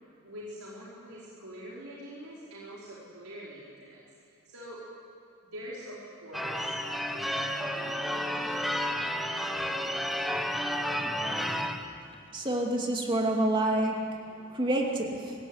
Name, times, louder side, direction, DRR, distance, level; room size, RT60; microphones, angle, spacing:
voice 1, 0.2-4.8 5.4-6.7 7.1-9.0, equal, 85° right, -7 dB, 5.0 m, -45 dB
Church bell / Car / Alarm, 6.3-11.9, equal, ahead, 1.0 m, -31 dB
voice 2, 12.3-14.0 14.5-15.3, right 1 dB, 20° right, 0 dB, 2.7 m, -27 dB
24.5 x 17.0 x 9.6 m, 2.6 s
head